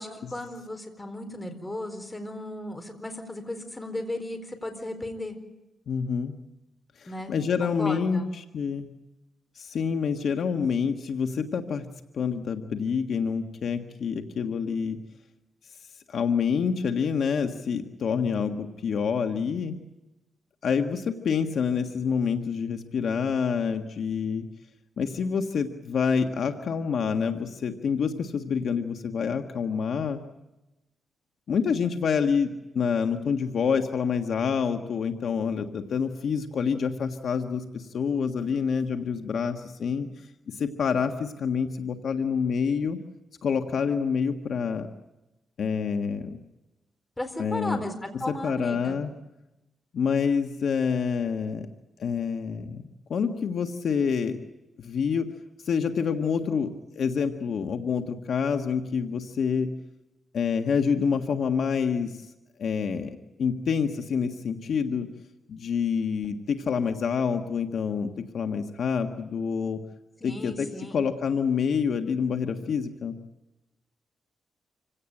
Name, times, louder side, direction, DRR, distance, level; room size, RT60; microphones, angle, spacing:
voice 1, 0.0-5.4 7.1-7.3 7.6-8.3 47.2-49.0 70.2-71.0, left 1 dB, 15° left, 6 dB, 4.3 m, -35 dB
voice 2, 5.9-6.4 7.0-8.9 9.5-11.8 12.1-15.0 16.1-19.8 20.6-24.4 25.0-30.2 31.5-40.1 40.6-43.0 43.4-44.9 45.6-46.4 47.4-47.8 48.4-49.1 49.9-51.7 52.0-52.8 53.1-54.4 54.8-55.3 55.6-56.7 56.9-59.7 60.3-62.1 62.6-63.1 63.4-65.1 65.5-69.8 70.2-70.7 70.9-73.1, left 6 dB, 70° left, 6 dB, 1.6 m, -27 dB
27.0 x 17.5 x 9.0 m, 0.97 s
cardioid pair, 110°, 0 cm